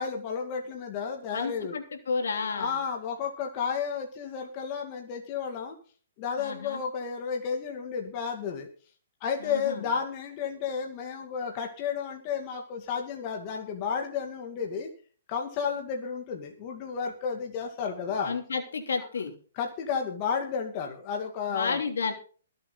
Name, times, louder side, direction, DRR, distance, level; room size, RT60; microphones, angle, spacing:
voice 1, 0.0-1.7 2.5-5.8 6.2-8.7 9.2-14.9 15.3-18.3 19.6-21.8, left 6 dB, 35° left, 2 dB, 2.5 m, -32 dB
voice 2, 1.3-2.8 6.4-6.8 9.4-9.9 18.2-19.3 21.5-22.1, left 5 dB, 80° left, 4 dB, 3.2 m, -31 dB
23.0 x 7.9 x 4.1 m, 0.41 s
hypercardioid pair, 140°, 0 cm